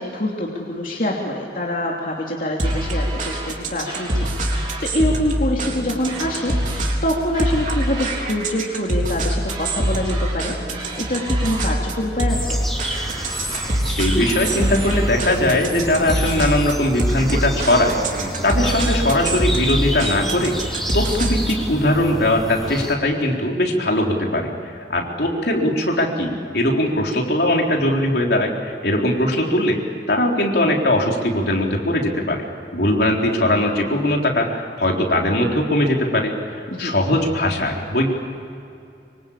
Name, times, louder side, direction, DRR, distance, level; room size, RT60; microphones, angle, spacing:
voice 1, 0.0-10.5 11.0-12.6 36.7-36.9, left 1 dB, 50° left, -2 dB, 2.9 m, -25 dB
sound 1, 2.6-3.5 3.8-4.9 6.0-7.0 7.3-8.3 9.5-10.4 10.7-11.7 12.9-13.8 14.2-15.2, right 3 dB, 25° right, 5.4 m, -35 dB
sound 2, 2.6-21.7, right 1 dB, 45° right, 3.7 m, -24 dB
sound 3, 12.3-22.9, equal, ahead, 2.9 m, -30 dB
voice 2, 14.0-20.6 20.9-29.8 30.1-32.4 32.7-38.1, left 1 dB, 65° left, 0 dB, 3.8 m, -20 dB
25.5 x 25.0 x 8.7 m, 2.5 s
head